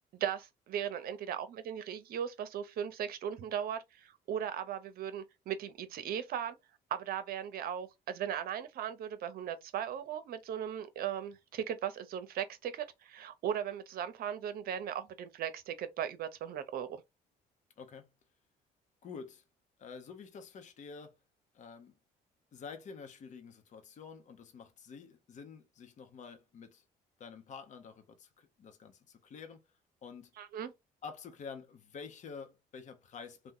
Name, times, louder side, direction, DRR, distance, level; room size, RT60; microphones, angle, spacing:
voice 1, 0.1-6.6 6.9-17.0 30.4-30.7, right 9 dB, 60° right, 0.7 m, -38 dB
voice 2, 17.8-18.1 19.0-19.4 19.8-21.2 21.5-21.9 22.5-26.8 27.2-29.6 30.0-30.3 31.0-33.5, left 5 dB, 45° left, 0.7 m, -48 dB
2.8 x 2.2 x 3.6 m
cardioid pair, 110°, 17 cm